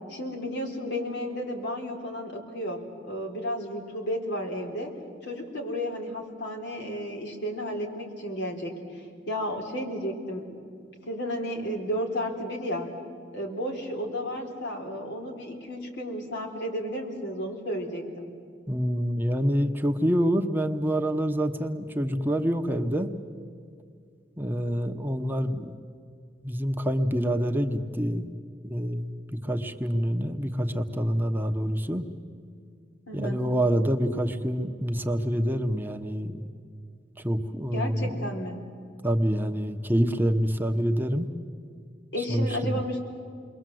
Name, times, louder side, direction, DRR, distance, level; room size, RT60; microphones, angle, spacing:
voice 1, 0.1-4.9 5.2-10.6 11.1-12.9 13.3-18.3 33.1-33.5 37.7-38.6 42.1-43.0, equal, 85° left, 1 dB, 4.2 m, -33 dB
voice 2, 18.7-23.1 24.4-25.8 26.4-28.3 28.6-29.1 29.4-32.1 33.1-36.4 37.2-38.3 39.0-41.3 42.2-42.8, equal, 10° right, 5 dB, 1.0 m, -26 dB
28.5 x 22.5 x 7.8 m, 2.2 s
head